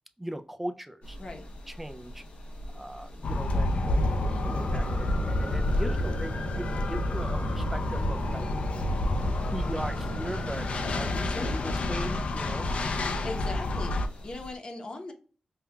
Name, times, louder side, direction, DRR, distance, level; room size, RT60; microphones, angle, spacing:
voice 1, 0.2-1.2 1.7-2.2 2.7-8.5 9.5-10.7 10.9-12.7, right 1 dB, 10° right, 7 dB, 0.4 m, -39 dB
sound 1, 1.0-14.6, equal, 85° left, 0.9 m, -43 dB
sound 2, 3.2-14.1, left 2 dB, 65° left, 0.5 m, -29 dB
sound 3, 3.8-11.1, right 3 dB, 75° right, 0.5 m, -38 dB
voice 2, 13.2-15.1, left 2 dB, 40° left, 4 dB, 0.8 m, -39 dB
5.4 x 2.3 x 2.2 m, 0.38 s
wide cardioid pair, 130°, 2 cm